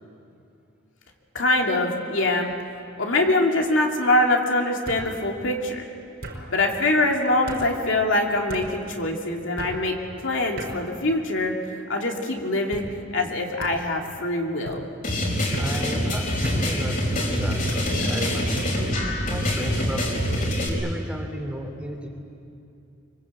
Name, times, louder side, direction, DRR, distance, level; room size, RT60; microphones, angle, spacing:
voice 1, 1.3-2.5 3.0-5.8 6.5-10.0 10.2-11.5 11.9-12.8 13.1-14.9, left 2 dB, 70° left, 1 dB, 2.8 m, -23 dB
sound 1, 1.4-1.8 2.2-2.7 3.8-3.9 4.9-5.1 6.2-6.4 7.5-7.7 8.5-8.7 9.6-9.8 10.6-10.8 11.5-11.9 12.7-12.9 13.6-13.8 14.6-14.8 15.5-15.7 16.4-16.6 17.7-17.9 18.6-18.8, right 1 dB, 55° right, 5.2 m, -35 dB
sound 2, 15.0-20.7, equal, 45° left, 5.0 m, -25 dB
voice 2, 15.6-22.1, equal, 5° right, 2 dB, 2.9 m, -35 dB
25.0 x 23.5 x 8.3 m, 2.7 s
head